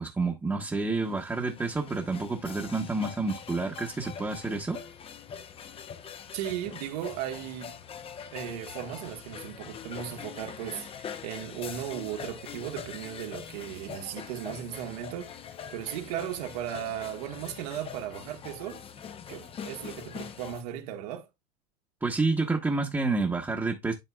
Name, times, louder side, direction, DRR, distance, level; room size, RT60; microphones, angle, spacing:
voice 1, 0.0-4.8 22.0-23.9, right 3 dB, 10° right, 1.1 m, -29 dB
sound 1, 0.8-20.6, left 7 dB, 25° left, 0.8 m, -43 dB
voice 2, 6.3-7.8 8.3-18.8 19.3-21.3, right 11 dB, 70° right, 1.5 m, -36 dB
11.0 x 4.0 x 2.3 m
hypercardioid pair, 105°, 21 cm